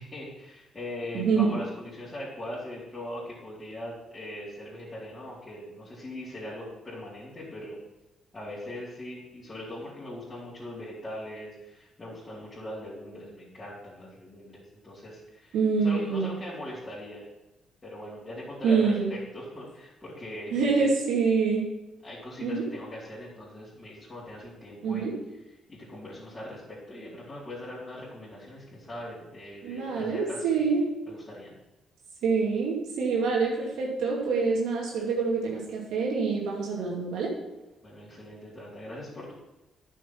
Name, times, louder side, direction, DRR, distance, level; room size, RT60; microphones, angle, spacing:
voice 1, 0.0-7.8 8.3-15.6 15.8-17.3 17.8-20.9 22.0-25.1 25.7-30.7 31.1-31.6 37.8-39.3, left 1 dB, 20° left, -10 dB, 3.7 m, -40 dB
voice 2, 1.1-1.5 15.5-16.3 18.6-19.1 20.5-21.7 22.4-22.6 24.8-25.2 29.6-30.9 32.2-37.3, right 5 dB, 80° right, -3 dB, 2.4 m, -26 dB
9.7 x 6.4 x 5.9 m, 1.0 s
cardioid pair, 90°, 0 cm